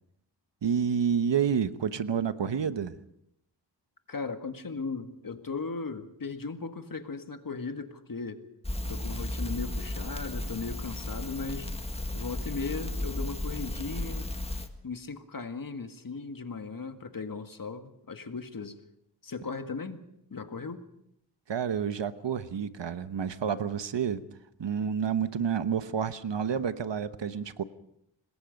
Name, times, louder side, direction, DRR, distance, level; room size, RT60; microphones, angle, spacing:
voice 1, 0.6-3.0 21.5-24.2 24.6-27.6, right 7 dB, 70° right, 12 dB, 1.1 m, -29 dB
voice 2, 4.1-8.4 8.9-11.7 12.1-14.3 14.8-18.8 19.2-20.0 20.3-20.9, left 4 dB, 50° left, 7 dB, 1.9 m, -37 dB
Crackle, 8.6-14.7, left 1 dB, 15° left, 1.8 m, -34 dB
26.0 x 20.5 x 5.3 m, 0.78 s
wide cardioid pair, 85°, 44 cm